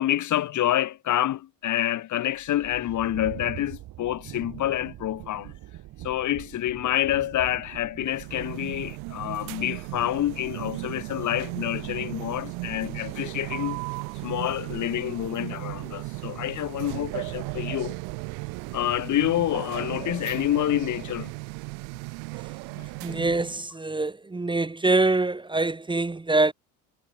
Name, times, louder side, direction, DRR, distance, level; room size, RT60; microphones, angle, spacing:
voice 1, 0.0-5.5 6.0-13.8 14.2-18.0 18.7-21.3 22.8-22.9, left 13 dB, 55° left, 2.0 m, -27 dB
sound 1, 2.3-20.3, right 15 dB, 60° right, 3.4 m, -46 dB
sound 2, 8.1-23.7, right 33 dB, 80° right, 7.4 m, -36 dB
voice 2, 23.0-26.5, right 2 dB, 15° right, 1.6 m, -24 dB
supercardioid pair, 90°, 37 cm